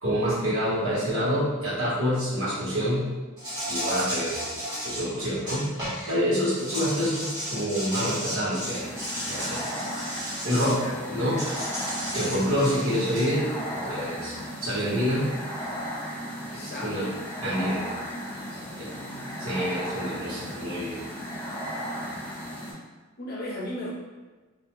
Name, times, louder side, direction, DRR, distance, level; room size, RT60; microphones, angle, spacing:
voice 1, 0.0-3.1 3.7-4.4 4.8-5.7 6.1-8.9 9.3-9.6 10.4-11.7 12.1-13.5 13.7-15.3 16.5-17.1 17.4-17.8 19.4-21.0, equal, 85° right, -10 dB, 1.3 m, -27 dB
Insect, 3.4-6.1 6.5-10.8 11.4-13.3, equal, 20° right, 1.0 m, -34 dB
sound 1, 8.7-22.7, equal, 5° left, 0.8 m, -36 dB
voice 2, 10.6-11.2 16.5-17.2 18.5-19.3 23.2-23.9, left 1 dB, 45° left, -4 dB, 0.6 m, -37 dB
2.6 x 2.1 x 3.1 m, 1.3 s
head